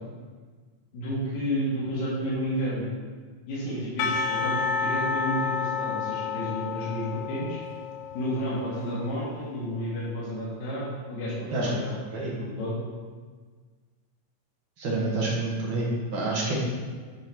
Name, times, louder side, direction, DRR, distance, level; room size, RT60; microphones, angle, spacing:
voice 1, 0.9-2.9 3.5-7.6 8.1-11.9 12.3-12.7, equal, 60° left, -8 dB, 2.8 m, -31 dB
Percussion / Church bell, 4.0-9.2, left 6 dB, 80° left, 1.7 m, -30 dB
voice 2, 14.8-16.5, right 2 dB, 55° right, -4 dB, 1.4 m, -28 dB
9.9 x 3.8 x 4.6 m, 1.5 s
omnidirectional pair, 3.8 m